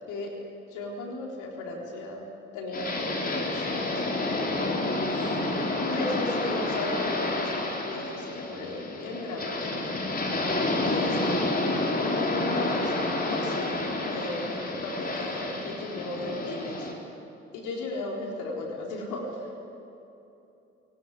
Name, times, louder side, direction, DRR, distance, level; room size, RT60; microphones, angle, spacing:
voice 1, 0.1-0.4 0.7-2.2 2.5-5.4 5.8-10.0 10.8-11.4 11.9-13.0 13.3-16.9 17.5-19.6, left 2 dB, 65° left, -1 dB, 4.0 m, -36 dB
sound 1, 2.7-16.9, left 2 dB, 25° left, 4.3 m, -29 dB
20.0 x 18.5 x 9.6 m, 2.9 s
figure-of-eight pair, 45°, 33 cm